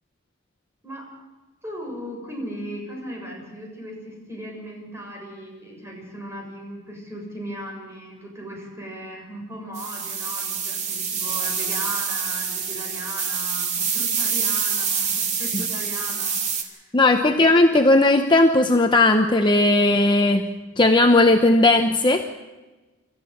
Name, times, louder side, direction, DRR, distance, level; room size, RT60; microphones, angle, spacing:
voice 1, 1.6-17.3, equal, 15° right, 0 dB, 6.9 m, -37 dB
sound 1, 9.7-16.6, right 6 dB, 35° right, 2.5 m, -26 dB
voice 2, 16.9-20.5 20.8-22.3, left 2 dB, 25° left, 5 dB, 0.9 m, -17 dB
26.5 x 14.0 x 8.0 m, 1.2 s
head